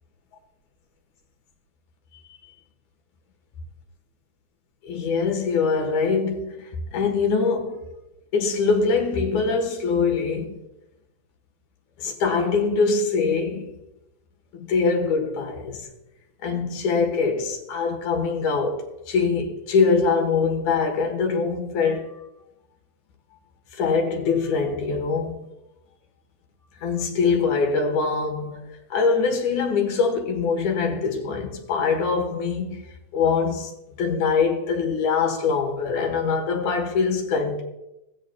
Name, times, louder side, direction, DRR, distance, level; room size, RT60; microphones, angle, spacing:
voice 1, 4.8-7.8 8.3-10.6 12.0-13.8 14.5-15.9 16.4-22.2 23.7-25.5 26.8-28.6 28.9-32.9 33.1-37.6, left 5 dB, 75° left, 2.9 m, -23 dB
19.0 x 7.8 x 2.3 m
omnidirectional pair, 3.4 m